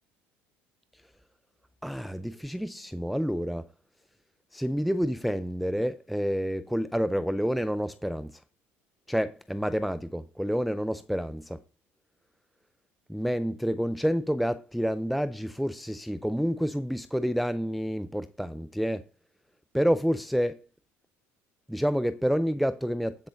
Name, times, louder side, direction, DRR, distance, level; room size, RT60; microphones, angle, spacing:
voice 1, 1.8-3.7 4.5-8.4 9.1-11.6 13.1-19.1 19.7-20.7 21.7-23.3, equal, ahead, 0.4 m, -28 dB
19.5 x 6.6 x 2.5 m
supercardioid pair, 110°, 6 cm